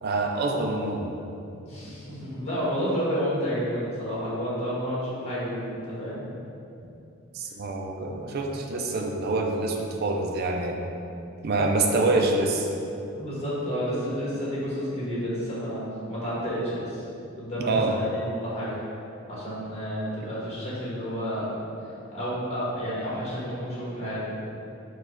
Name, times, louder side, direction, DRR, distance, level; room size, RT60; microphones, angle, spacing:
voice 1, 0.0-1.1 7.3-10.8 11.4-12.7 17.6-18.0, right 2 dB, 50° right, 2 dB, 0.4 m, -26 dB
voice 2, 1.6-6.2 12.0-12.1 13.1-17.0 17.4-18.0 18.4-18.8 19.3-21.6 22.1-24.3, equal, 30° left, -9 dB, 1.3 m, -30 dB
4.5 x 2.3 x 4.5 m, 2.7 s
head